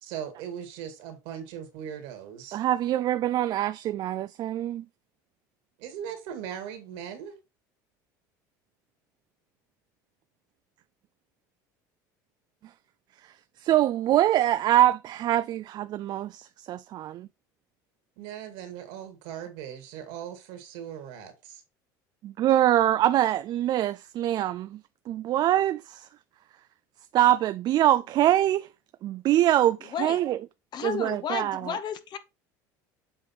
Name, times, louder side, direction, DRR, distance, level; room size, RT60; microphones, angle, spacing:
voice 1, 0.0-2.6 5.8-7.4 18.2-21.6, right 9 dB, 70° right, 2.2 m, -39 dB
voice 2, 2.5-4.8 12.6-12.7 13.2-17.3 22.2-26.1 27.1-28.7 29.0-30.4 30.8-31.8, right 13 dB, 45° right, 0.3 m, -24 dB
voice 3, 30.7-32.2, left 8 dB, 45° left, 1.0 m, -33 dB
7.8 x 3.7 x 4.3 m
supercardioid pair, 90°, 10 cm